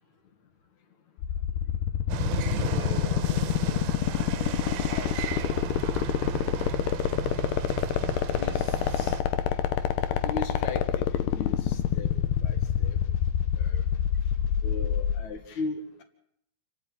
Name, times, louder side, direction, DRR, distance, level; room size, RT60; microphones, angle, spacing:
sound 1, 1.2-15.2, left 11 dB, 80° left, 3.0 m, -25 dB
sound 2, 2.1-9.2, right 10 dB, 75° right, 2.7 m, -35 dB
voice 1, 2.6-3.6 4.9-5.8 6.4-6.8 8.3-9.2 10.1-12.1 12.4-13.0 13.5-13.8 14.6-16.0, left 3 dB, 50° left, 6 dB, 3.0 m, -39 dB
28.5 x 10.5 x 9.3 m, 0.72 s
omnidirectional pair, 4.8 m